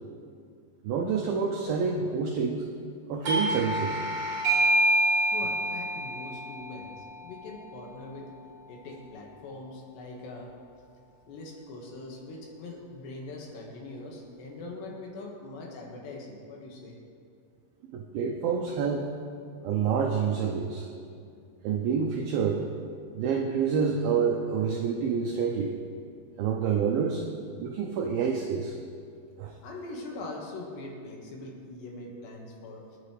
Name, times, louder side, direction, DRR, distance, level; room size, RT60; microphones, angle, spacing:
voice 1, 0.8-2.7 3.1-4.0 17.9-19.1 19.6-20.9 21.6-22.7 23.1-25.7 26.4-27.2 27.6-28.8 29.4-29.5, right 6 dB, 85° right, 2 dB, 2.1 m, -28 dB
Doorbell, 3.2-8.5, right 1 dB, 50° right, 1.7 m, -28 dB
voice 2, 5.3-8.3 8.7-10.5 11.3-17.0 29.6-33.0, left 2 dB, 75° left, -1 dB, 3.7 m, -42 dB
25.5 x 9.0 x 3.3 m, 2.3 s
omnidirectional pair, 5.2 m